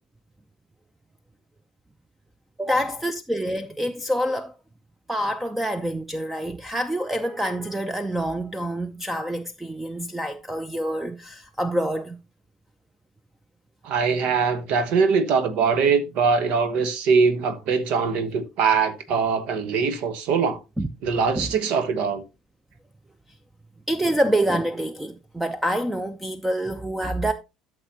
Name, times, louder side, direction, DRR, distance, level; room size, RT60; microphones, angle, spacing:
voice 1, 2.6-4.5 5.1-12.2 20.8-20.9 21.4-21.5 23.9-27.3, right 1 dB, 10° right, 0.7 m, -26 dB
voice 2, 13.8-20.6 21.0-22.2, right 5 dB, 55° right, 1.3 m, -22 dB
13.0 x 6.6 x 2.9 m
figure-of-eight pair, 60°, 2 cm